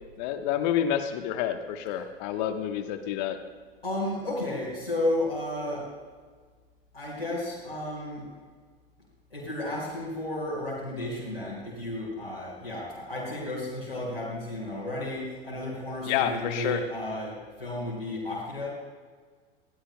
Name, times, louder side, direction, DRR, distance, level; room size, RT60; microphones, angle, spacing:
voice 1, 0.2-3.4 16.1-16.8, left 10 dB, 50° left, 8 dB, 1.1 m, -28 dB
voice 2, 3.8-5.9 6.9-8.3 9.3-18.7, left 1 dB, 85° left, -8 dB, 4.5 m, -33 dB
21.5 x 17.5 x 2.2 m, 1.5 s
figure-of-eight pair, 85°, 29 cm